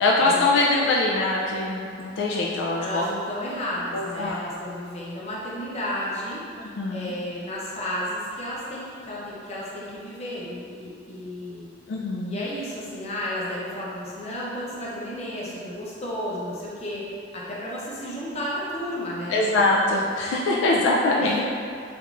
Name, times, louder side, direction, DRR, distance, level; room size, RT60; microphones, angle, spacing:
voice 1, 0.0-3.0 3.9-4.4 6.8-7.1 11.9-12.4 19.3-21.4, left 2 dB, 75° left, -3 dB, 0.3 m, -23 dB
voice 2, 2.8-6.5 6.9-11.7 12.3-19.5 21.2-21.4, equal, 35° left, -6 dB, 0.7 m, -32 dB
3.5 x 2.9 x 2.4 m, 2.3 s
head